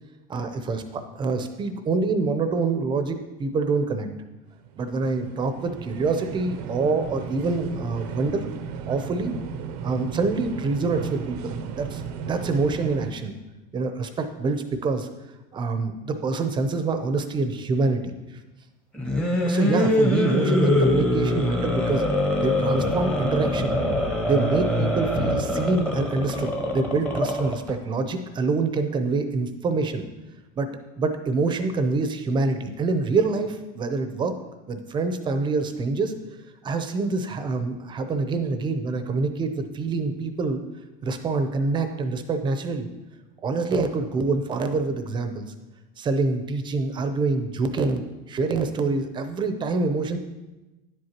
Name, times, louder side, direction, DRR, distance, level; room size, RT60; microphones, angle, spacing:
voice 1, 0.3-4.1 4.8-8.5 8.9-9.3 9.8-13.3 13.7-15.1 15.5-18.1 19.4-22.0 22.4-23.8 24.2-30.1 30.6-30.7 31.0-34.3 34.7-36.1 36.6-40.6 41.0-42.9 43.4-45.5 46.0-50.2, right 3 dB, 25° right, 8 dB, 0.6 m, -26 dB
sound 1, 4.5-13.1, right 6 dB, 70° right, 0.7 m, -35 dB
sound 2, 18.9-27.7, left 1 dB, 5° left, 0.9 m, -24 dB
10.5 x 7.8 x 2.9 m, 1.1 s
supercardioid pair, 140°, 20 cm